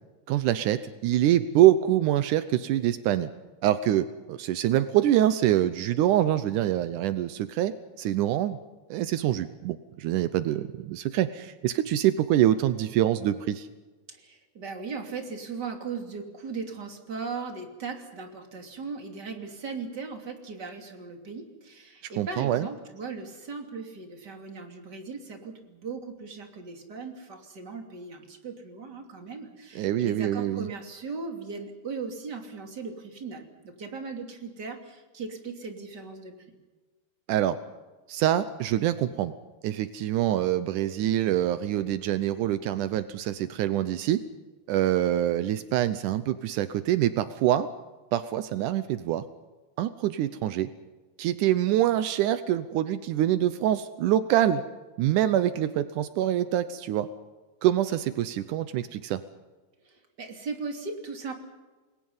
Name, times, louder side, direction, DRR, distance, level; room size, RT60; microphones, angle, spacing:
voice 1, 0.3-3.3 3.6-8.6 8.9-13.7 22.2-22.7 29.8-30.7 37.3-37.6 38.1-39.3 39.6-44.2 44.7-47.7 48.1-49.2 49.8-50.7 51.2-54.6 55.0-57.1 57.6-59.2, right 12 dB, 85° right, 12 dB, 1.8 m, -25 dB
voice 2, 14.1-36.3 59.8-61.3, right 4 dB, 30° right, 3 dB, 3.0 m, -38 dB
29.5 x 21.5 x 5.6 m, 1.3 s
omnidirectional pair, 4.6 m